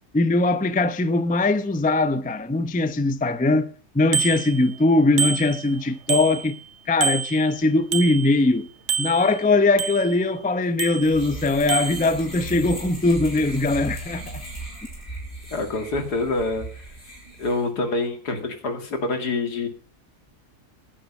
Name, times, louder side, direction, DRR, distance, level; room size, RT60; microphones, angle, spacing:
voice 1, 0.1-3.7 3.9-6.6 6.9-8.7 9.0-14.4, left 2 dB, 10° left, 0.4 m, -21 dB
Bicycle bell, 4.1-4.9 5.2-6.7 7.0-8.6 8.9-10.3 10.8-11.4 11.7-12.1, right 7 dB, 50° right, 1.2 m, -28 dB
sound 1, 11.0-17.7, right 2 dB, 30° left, 4.5 m, -37 dB
voice 2, 15.5-16.7 17.4-19.7, left 3 dB, 80° left, 2.8 m, -26 dB
15.5 x 10.0 x 5.5 m
omnidirectional pair, 1.7 m